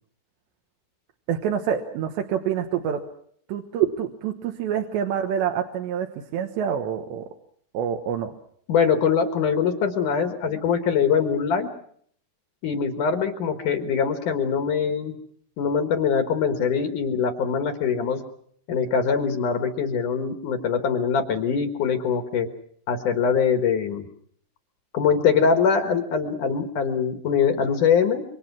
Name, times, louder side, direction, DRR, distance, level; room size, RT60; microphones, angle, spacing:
voice 1, 1.3-3.0 3.5-6.1 6.3-7.3 7.7-8.3, right 8 dB, 70° right, 3 dB, 3.3 m, -26 dB
voice 2, 8.7-11.7 12.6-15.1 15.6-18.2 18.7-22.5 22.9-24.1 24.9-28.2, left 6 dB, 60° left, 7 dB, 2.2 m, -23 dB
27.5 x 24.5 x 6.1 m, 0.64 s
omnidirectional pair, 5.7 m